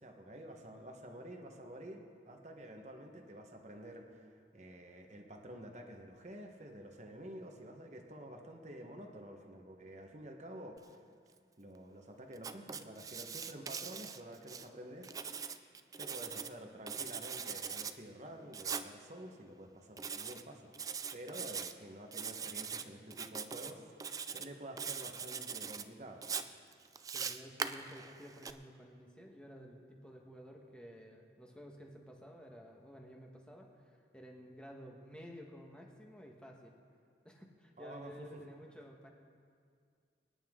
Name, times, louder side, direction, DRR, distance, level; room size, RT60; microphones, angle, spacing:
voice 1, 0.0-11.0 11.6-15.5 16.0-20.7 21.1-23.8 24.3-26.3 37.8-38.4, right 1 dB, 40° right, 3 dB, 1.3 m, -50 dB
Writing, 12.4-14.7 15.0-16.5 16.9-17.9 18.5-18.9 20.0-20.4 20.7-21.7 22.1-22.8 23.1-23.7 24.0-24.5 24.8-25.8 26.2-28.5, right 6 dB, 20° right, 0.4 m, -41 dB
voice 2, 27.1-36.8 37.2-39.1, equal, 5° left, 0 dB, 1.4 m, -53 dB
25.0 x 10.0 x 3.8 m, 2.2 s
head